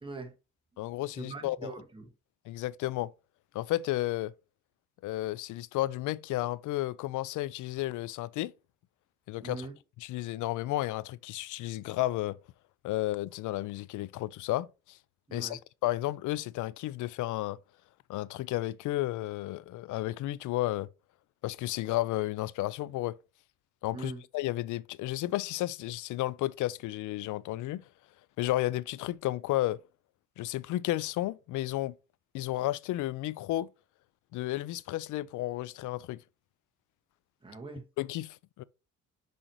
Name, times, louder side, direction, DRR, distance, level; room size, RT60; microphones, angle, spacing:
voice 1, 0.0-0.3 0.7-0.8 1.1-2.1 9.4-9.8 15.3-15.6 23.9-24.2 37.4-37.8, right 3 dB, 15° right, 1.6 m, -42 dB
voice 2, 0.8-1.7 2.5-3.1 3.5-4.3 5.0-8.5 9.3-9.7 10.1-12.4 12.8-15.0 15.3-17.6 18.1-20.9 21.4-23.2 23.8-27.8 28.4-29.8 30.4-32.0 32.3-33.7 34.3-36.2 38.0-38.6, left 16 dB, 80° left, 0.5 m, -32 dB
6.2 x 5.1 x 3.0 m
cardioid pair, 90°, 30 cm